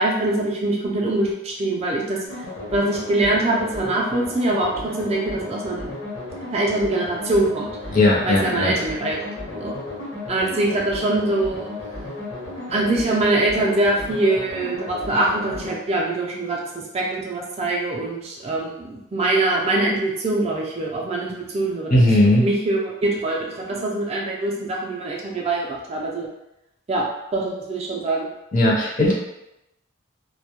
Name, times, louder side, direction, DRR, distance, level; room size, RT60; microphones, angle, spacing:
voice 1, 0.0-2.2 2.7-4.7 5.0-5.9 6.5-7.7 8.3-9.2 9.5-9.8 10.3-11.7 12.7-16.7 16.9-21.9 22.2-26.3 26.9-27.0 27.3-28.3, right 2 dB, 30° right, -2 dB, 0.3 m, -23 dB
sound 1, 2.3-15.7, left 2 dB, 70° left, 0.9 m, -33 dB
voice 2, 7.9-8.7 21.9-22.5 28.5-29.1, left 1 dB, 40° left, -3 dB, 0.5 m, -17 dB
2.1 x 2.0 x 2.8 m, 0.89 s
head